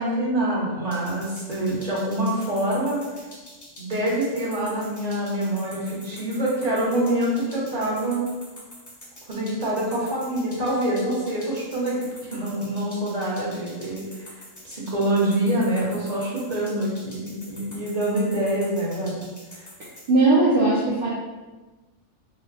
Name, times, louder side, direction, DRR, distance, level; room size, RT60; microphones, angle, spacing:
voice 1, 0.0-3.0 3.8-8.2 9.3-14.3 14.6-19.3 19.5-19.7, right 1 dB, 35° right, -6 dB, 1.0 m, -25 dB
sound 1, 0.9-20.1, left 1 dB, 30° left, 0.3 m, -45 dB
voice 2, 20.1-21.1, right 2 dB, 55° right, -7 dB, 0.7 m, -18 dB
3.3 x 2.1 x 4.0 m, 1.2 s
omnidirectional pair, 1.4 m